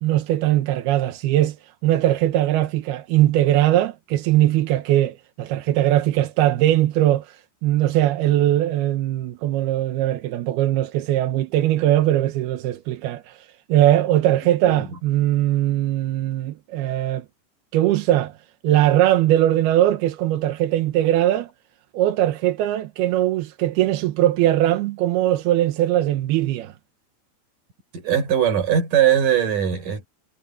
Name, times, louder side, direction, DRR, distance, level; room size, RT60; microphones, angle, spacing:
voice 1, 0.0-1.6 1.8-17.3 17.7-18.4 18.6-21.5 21.9-26.7, right 13 dB, 70° right, 2.6 m, -20 dB
voice 2, 27.9-30.1, right 9 dB, 45° right, 6.3 m, -20 dB
omnidirectional pair, 5.4 m